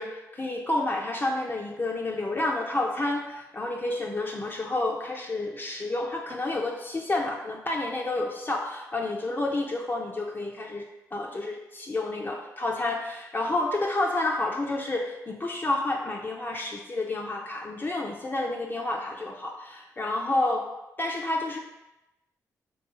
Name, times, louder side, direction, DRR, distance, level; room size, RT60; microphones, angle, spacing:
voice 1, 0.0-20.7 21.0-21.6, left 2 dB, 25° left, -1 dB, 0.4 m, -30 dB
2.7 x 2.7 x 2.3 m, 0.97 s
hypercardioid pair, 40°, 8 cm